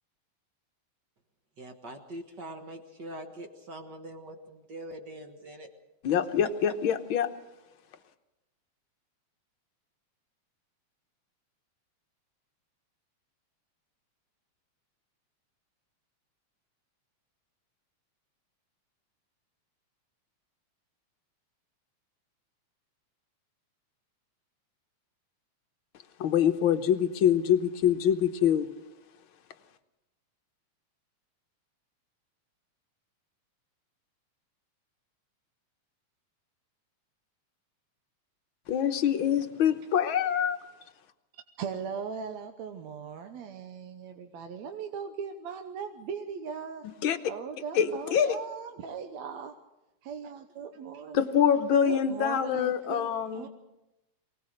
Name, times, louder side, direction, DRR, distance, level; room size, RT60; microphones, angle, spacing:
voice 1, 1.6-5.7 6.4-6.5, right 1 dB, 45° right, 5 dB, 1.7 m, -43 dB
voice 2, 6.0-7.3 26.2-28.7 38.7-40.6 47.0-47.2 47.7-48.3 51.2-53.5, left 9 dB, 60° left, 8 dB, 1.3 m, -25 dB
voice 3, 41.6-46.8 47.3-49.5 50.0-51.3 51.8-53.5, right 6 dB, 75° right, 6 dB, 2.2 m, -39 dB
24.0 x 18.5 x 6.5 m, 0.95 s
omnidirectional pair, 3.4 m